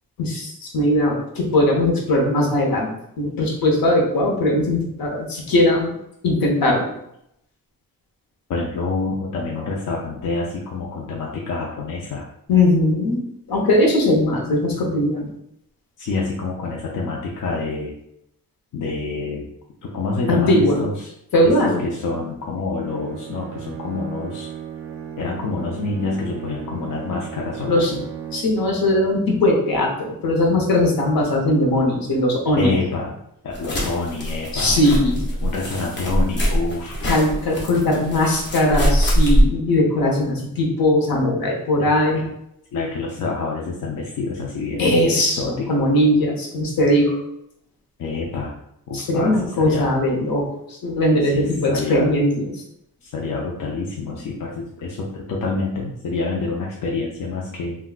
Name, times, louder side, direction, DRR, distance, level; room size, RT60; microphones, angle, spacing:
voice 1, 0.2-2.9 3.2-5.9 6.2-6.9 12.5-13.2 13.5-15.3 20.3-20.8 21.3-21.8 27.7-27.9 28.3-32.7 34.5-35.2 37.0-42.2 44.8-47.2 48.9-52.5, left 1 dB, 75° left, 0 dB, 0.9 m, -19 dB
voice 2, 8.5-12.2 16.0-17.9 18.7-19.5 19.8-21.1 21.4-21.5 21.8-24.5 25.2-28.1 32.6-33.2 33.4-35.1 35.4-37.0 41.8-41.9 42.1-42.3 42.7-45.8 48.0-48.6 48.9-49.9 51.3-52.1 53.0-57.8, left 3 dB, 60° left, -2 dB, 0.5 m, -27 dB
Bowed string instrument, 22.8-28.8, right 8 dB, 40° right, 0.4 m, -35 dB
sound 1, 33.5-39.4, equal, 30° left, 0.7 m, -22 dB
3.6 x 2.3 x 2.3 m, 0.77 s
cardioid pair, 100°, 35 cm